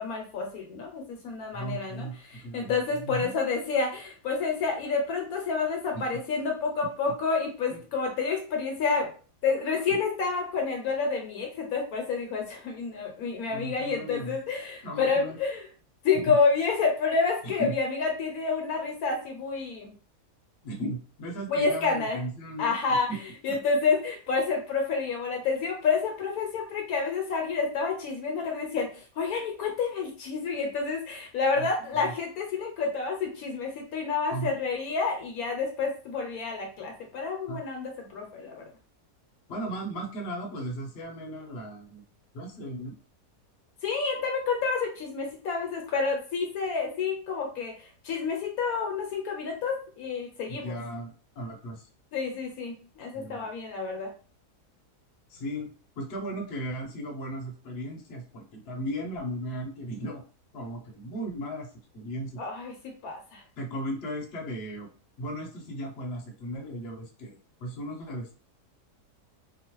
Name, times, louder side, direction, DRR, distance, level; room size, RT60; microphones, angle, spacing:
voice 1, 0.0-9.1 9.4-15.7 16.0-19.9 21.5-22.2 22.6-23.1 23.4-38.6 43.8-50.7 52.1-54.1 62.4-62.8 63.0-63.4, left 4 dB, 70° left, 2 dB, 1.0 m, -29 dB
voice 2, 1.5-3.3 5.9-6.1 6.8-6.9 7.7-7.8 9.9-10.0 13.5-14.4 14.8-15.4 16.1-16.4 17.4-17.8 20.6-23.2 23.5-23.6 31.5-32.1 34.3-34.6 37.5-37.6 39.5-42.0 42.3-42.9 50.5-51.9 53.1-53.5 55.3-55.7 56.0-60.2 60.5-61.7 61.9-62.4 63.6-64.9 65.2-68.3, right 1 dB, 50° left, 0 dB, 0.8 m, -36 dB
3.0 x 2.1 x 2.9 m, 0.38 s
omnidirectional pair, 1.7 m